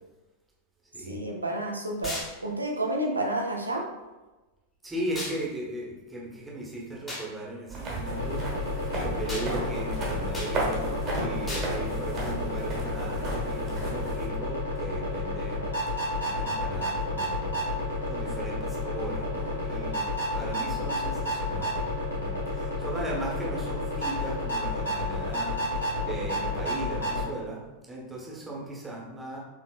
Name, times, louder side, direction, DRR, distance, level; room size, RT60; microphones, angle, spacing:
voice 1, 1.1-2.2 2.4-3.8, right 1 dB, 80° right, 1 dB, 0.6 m, -30 dB
sound 1, 2.0-2.3 5.1-5.4 7.1-7.3 9.3-9.5 10.3-10.5 11.5-11.7, left 1 dB, 15° left, 1.3 m, -35 dB
voice 2, 4.8-8.4 8.7-17.7 18.1-20.1 20.3-27.6 27.9-29.4, right 1 dB, 10° right, -4 dB, 1.1 m, -37 dB
sound 2, 7.7-14.3, right 2 dB, 30° right, 1.1 m, -34 dB
sound 3, 8.0-27.3, left 2 dB, 70° left, 1.2 m, -31 dB
4.4 x 3.2 x 2.4 m, 1.1 s
figure-of-eight pair, 90°, 0 cm